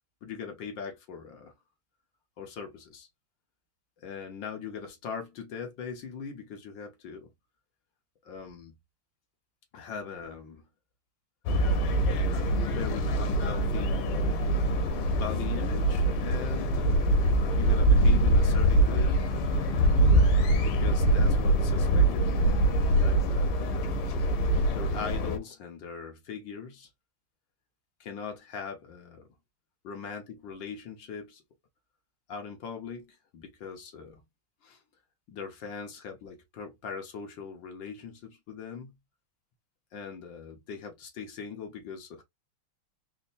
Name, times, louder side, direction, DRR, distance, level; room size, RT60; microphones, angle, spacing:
voice 1, 0.2-1.5 2.4-3.1 4.0-7.3 8.2-8.8 9.7-10.7 12.3-14.2 15.1-17.1 17.5-19.4 20.6-22.6 23.0-23.6 24.7-26.9 28.0-29.3 29.8-31.4 32.3-34.2 34.6-34.8 35.3-38.9 39.9-42.2, left 6 dB, 65° left, 1.5 m, -40 dB
sound 1, 11.5-25.4, right 1 dB, 90° left, 1.7 m, -24 dB
4.2 x 2.6 x 2.5 m
omnidirectional pair, 2.4 m